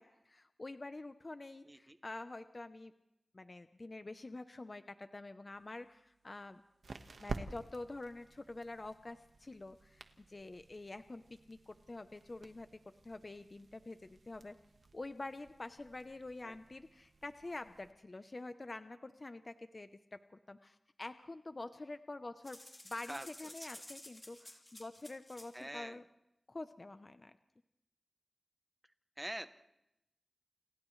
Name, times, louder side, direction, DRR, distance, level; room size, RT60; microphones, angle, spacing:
voice 1, 0.0-2.9 3.3-6.6 7.2-11.2 11.5-12.7 13.0-14.5 14.9-22.6 22.8-26.0 26.5-27.3, left 2 dB, 35° left, 9 dB, 0.8 m, -47 dB
voice 2, 1.7-2.0 16.4-16.5 23.1-23.3 23.6-23.7 25.5-26.0 29.2-29.5, right 1 dB, 15° right, 10 dB, 0.9 m, -44 dB
sound 1, 5.5-17.9, right 3 dB, 75° right, 1.4 m, -52 dB
sound 2, 22.4-25.6, left 1 dB, 20° left, 3.6 m, -53 dB
29.5 x 29.0 x 3.2 m, 0.89 s
wide cardioid pair, 100°, 0 cm